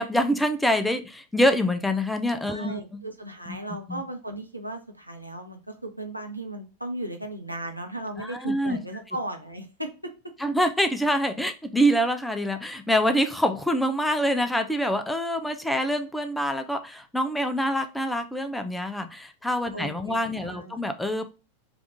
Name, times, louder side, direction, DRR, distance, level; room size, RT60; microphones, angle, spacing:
voice 1, 0.0-3.0 3.9-4.0 8.2-8.8 10.4-21.2, equal, 5° left, 8 dB, 0.4 m, -25 dB
voice 2, 2.4-10.1 19.7-20.8, right 1 dB, 85° right, 3 dB, 0.7 m, -36 dB
3.5 x 2.5 x 3.9 m, 0.33 s
figure-of-eight pair, 90°, 0 cm